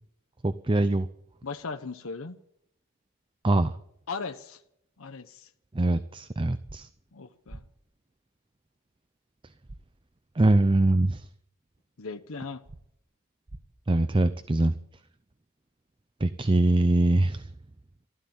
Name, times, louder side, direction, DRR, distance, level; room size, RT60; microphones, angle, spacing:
voice 1, 0.4-1.1 3.4-3.7 5.7-6.9 10.4-11.3 13.9-14.8 16.2-17.5, right 2 dB, 20° right, 0.5 m, -23 dB
voice 2, 1.4-2.4 4.1-4.6 5.0-5.5 7.1-7.6 12.0-12.6, left 4 dB, 65° left, 0.9 m, -37 dB
sound 1, 6.6-6.8 7.5-7.6 9.7-9.8 10.5-10.6 12.6-12.8 13.5-13.6, right 2 dB, 45° right, 1.2 m, -43 dB
15.0 x 12.5 x 7.3 m
head